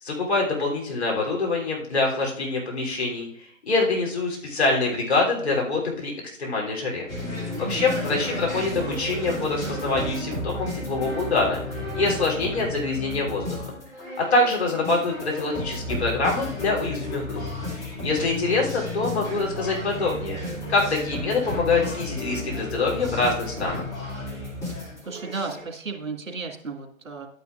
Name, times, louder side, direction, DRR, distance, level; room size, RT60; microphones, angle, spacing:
voice 1, 0.0-7.1 7.6-11.6 12.0-13.8 14.2-17.4 18.0-20.4 20.7-23.8, left 3 dB, 50° left, -2 dB, 3.3 m, -25 dB
sound 1, 7.1-25.6, left 1 dB, 10° left, 2.4 m, -33 dB
voice 2, 7.4-8.5 18.2-18.5 24.7-24.8 25.1-27.3, right 4 dB, 65° right, 3 dB, 2.0 m, -35 dB
12.0 x 9.4 x 2.5 m, 0.65 s
figure-of-eight pair, 140°, 41 cm